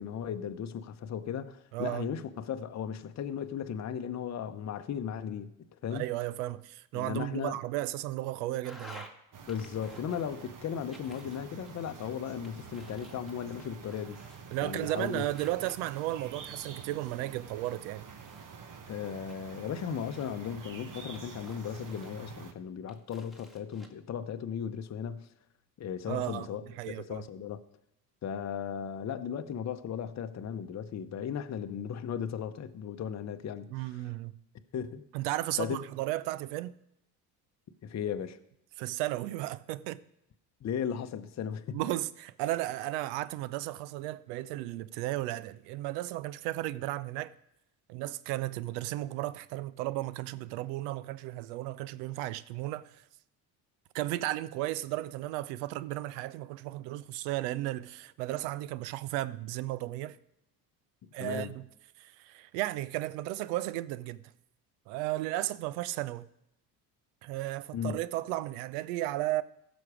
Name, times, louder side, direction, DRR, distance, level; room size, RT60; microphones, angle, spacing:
voice 1, 0.0-5.5 5.8-6.0 6.9-7.6 9.5-14.2 14.6-15.3 18.9-25.3 25.8-27.6 28.2-33.8 34.7-35.0 35.6-35.8 37.8-38.4 40.6-41.8 61.2-61.5 67.7-68.0, left 8 dB, 35° left, 0.8 m, -36 dB
voice 2, 1.7-2.1 5.9-9.1 14.5-18.1 26.1-27.2 33.7-34.4 35.1-36.8 38.8-40.0 41.7-47.3 47.9-53.0 53.9-60.2 61.1-61.7 62.0-64.2 64.9-66.3 67.2-69.4, right 16 dB, 75° right, 0.6 m, -34 dB
sound 1, 8.6-9.1 9.5-10.5 10.9-12.0 12.4-14.4 14.7-16.2 16.8-18.7 19.3-20.5 21.1-22.4 22.9-23.9, equal, ahead, 1.7 m, -53 dB
sound 2, 9.3-22.5, right 6 dB, 40° right, 1.3 m, -48 dB
15.5 x 6.2 x 4.9 m
hypercardioid pair, 70°, 48 cm